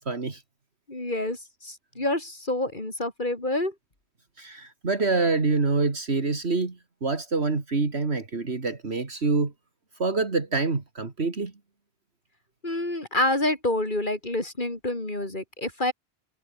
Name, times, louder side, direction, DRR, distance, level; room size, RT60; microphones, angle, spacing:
voice 1, 0.1-0.4 4.4-6.8 7.0-9.5 10.0-11.5, right 3 dB, 70° right, 2.8 m, -26 dB
voice 2, 0.9-3.7 12.6-15.9, left 1 dB, 45° left, 4.8 m, -28 dB
omnidirectional pair, 1.1 m